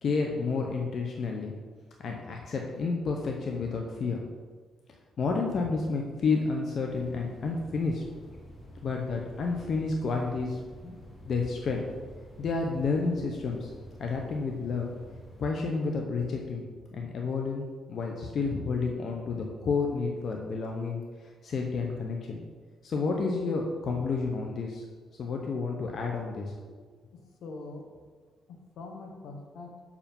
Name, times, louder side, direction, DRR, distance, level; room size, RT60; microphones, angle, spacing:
voice 1, 0.0-1.5 2.0-4.2 5.2-8.0 8.8-10.9 11.2-11.8 12.4-13.7 14.0-14.9 15.4-16.6 16.9-21.0 21.4-22.4 22.8-24.8 25.2-26.5, left 4 dB, 55° left, 1 dB, 0.8 m, -30 dB
sound 1, 6.9-15.5, equal, 30° left, 1.9 m, -49 dB
voice 2, 27.1-27.9 28.5-29.8, left 3 dB, 75° left, 2 dB, 1.2 m, -43 dB
6.7 x 5.0 x 5.3 m, 1.5 s
cardioid pair, 90°, 0 cm